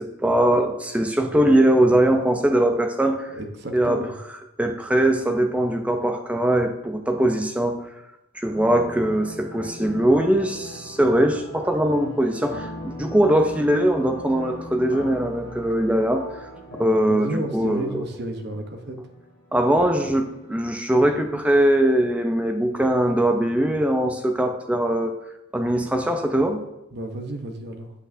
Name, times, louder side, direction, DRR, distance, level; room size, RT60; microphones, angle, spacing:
voice 1, 0.0-3.3 3.7-4.0 4.6-7.9 8.3-12.7 13.0-16.3 16.7-18.0 19.5-25.2 25.5-26.6, right 1 dB, 5° right, 5 dB, 0.5 m, -21 dB
voice 2, 3.3-4.1 16.7-19.0 26.9-27.9, right 1 dB, 50° right, 5 dB, 0.9 m, -32 dB
sound 1, 8.5-20.5, left 1 dB, 45° left, 1.4 m, -40 dB
8.3 x 8.0 x 2.7 m, 0.90 s
head